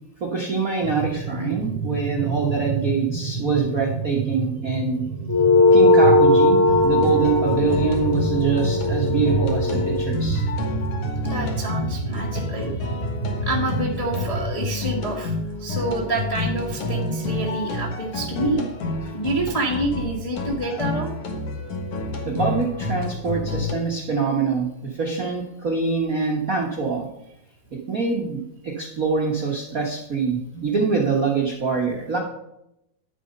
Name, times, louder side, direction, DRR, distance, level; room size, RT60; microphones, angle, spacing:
voice 1, 0.2-5.0 5.7-6.6 6.8-10.4 22.2-27.1 27.7-32.2, right 5 dB, 70° right, -1 dB, 0.8 m, -24 dB
sound 1, 0.8-14.6, right 4 dB, 50° right, 1.5 m, -29 dB
sound 2, 5.3-10.1, left 2 dB, 5° left, 2.2 m, -18 dB
sound 3, 6.7-23.7, left 3 dB, 55° left, 2.2 m, -29 dB
voice 2, 11.3-12.9 13.4-18.7 19.1-21.1, right 2 dB, 80° left, -3 dB, 0.3 m, -27 dB
10.5 x 7.7 x 5.4 m, 0.82 s
omnidirectional pair, 3.6 m